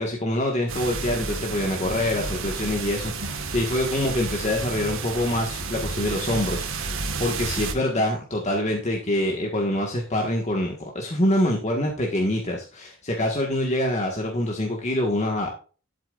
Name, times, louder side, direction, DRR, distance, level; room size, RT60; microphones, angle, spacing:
voice 1, 0.0-15.5, left 1 dB, 30° left, 0 dB, 1.6 m, -25 dB
sound 1, 0.7-7.7, right 4 dB, 65° right, 1.6 m, -31 dB
12.0 x 8.6 x 2.5 m, 0.36 s
head